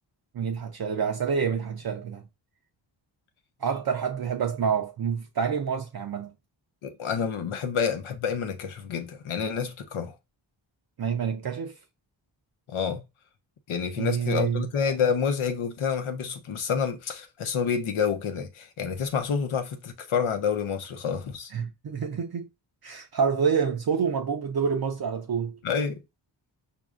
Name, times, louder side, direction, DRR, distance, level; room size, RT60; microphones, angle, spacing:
voice 1, 0.3-2.2 3.6-6.3 11.0-11.7 14.0-14.7 21.5-22.5 22.8-25.6, right 6 dB, 50° right, 0.6 m, -27 dB
voice 2, 6.8-10.2 12.7-13.0 13.7-21.5 25.6-26.0, left 6 dB, 85° left, 0.8 m, -28 dB
5.1 x 2.6 x 2.4 m
cardioid pair, 65°, 47 cm